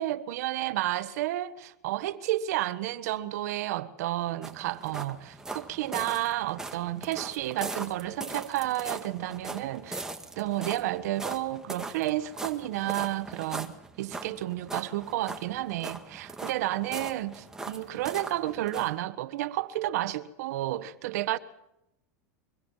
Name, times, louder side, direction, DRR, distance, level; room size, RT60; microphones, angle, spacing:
voice 1, 0.0-10.1 10.4-21.4, right 15 dB, 70° right, 1.4 m, -31 dB
sound 1, 4.4-18.9, right 3 dB, 5° right, 1.9 m, -40 dB
24.5 x 24.0 x 5.7 m
supercardioid pair, 130°, 9 cm